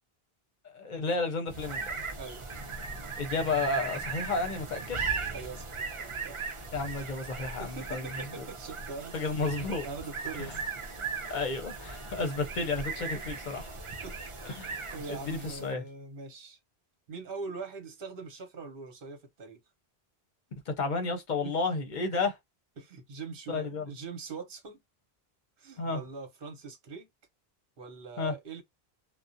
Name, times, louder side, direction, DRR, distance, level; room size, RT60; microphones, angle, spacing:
voice 1, 0.7-2.0 3.2-5.0 6.7-8.1 8.4-8.5 9.1-9.9 10.4-10.5 11.3-13.2 13.5-13.6 14.4-14.8 15.1-15.8 20.7-22.4 23.5-23.8 25.8-26.0 28.2-28.3, left 3 dB, 55° left, 0.7 m, -32 dB
sound 1, 1.5-15.8, right 4 dB, 40° right, 0.5 m, -38 dB
voice 2, 5.3-6.4 6.8-7.1 7.6-9.2 9.8-11.0 12.2-12.3 13.1-13.4 14.0-14.5 14.9-16.6 17.1-19.6 21.4-21.6 22.8-24.8 25.6-27.1 27.8-28.6, right 4 dB, 60° right, 1.0 m, -42 dB
2.4 x 2.0 x 2.5 m
omnidirectional pair, 1.0 m